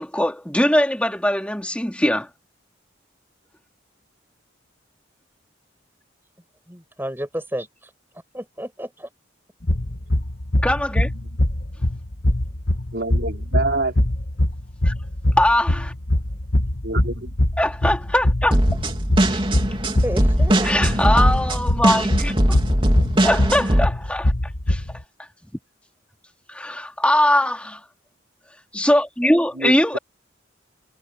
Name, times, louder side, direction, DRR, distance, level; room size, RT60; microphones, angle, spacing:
voice 1, 0.0-2.3 10.6-11.1 14.8-14.9 15.4-15.9 17.6-18.6 19.3-19.4 20.6-22.6 23.2-24.3 24.7-24.8 26.5-27.8 28.7-30.0, left 1 dB, 5° left, 3.5 m, -21 dB
voice 2, 6.7-7.9 8.3-9.1 20.0-20.8, equal, 10° right, 7.9 m, -31 dB
sound 1, 9.6-25.0, left 1 dB, 50° left, 1.5 m, -23 dB
voice 3, 12.9-14.0 16.8-17.3 29.6-30.0, right 2 dB, 60° right, 3.9 m, -26 dB
sound 2, 18.5-23.9, right 1 dB, 25° right, 3.5 m, -20 dB
head